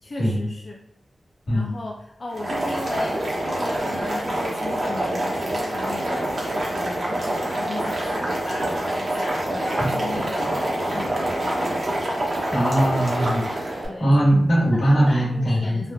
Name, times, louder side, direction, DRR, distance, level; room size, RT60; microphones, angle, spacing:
voice 1, 0.0-0.8 1.5-11.6 13.9-14.4 14.7-15.9, left 2 dB, 50° left, -1 dB, 0.3 m, -36 dB
Boiling, 2.3-13.9, right 1 dB, 50° right, 0.8 m, -26 dB
voice 2, 12.5-15.9, right 1 dB, 80° left, -5 dB, 1.2 m, -21 dB
3.2 x 2.1 x 2.4 m, 0.73 s
wide cardioid pair, 75°, 0 cm